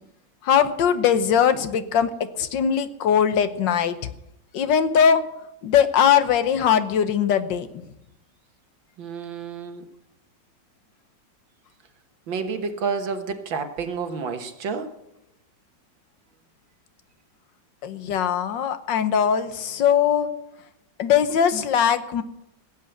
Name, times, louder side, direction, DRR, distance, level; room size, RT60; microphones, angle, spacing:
voice 1, 0.4-4.1 4.5-5.3 5.6-7.7 17.8-20.3 21.0-22.2, left 8 dB, 75° left, 11 dB, 1.6 m, -20 dB
voice 2, 9.0-9.9 12.3-14.9, right 5 dB, 85° right, 6 dB, 2.1 m, -30 dB
16.5 x 8.6 x 7.8 m, 0.85 s
omnidirectional pair, 2.0 m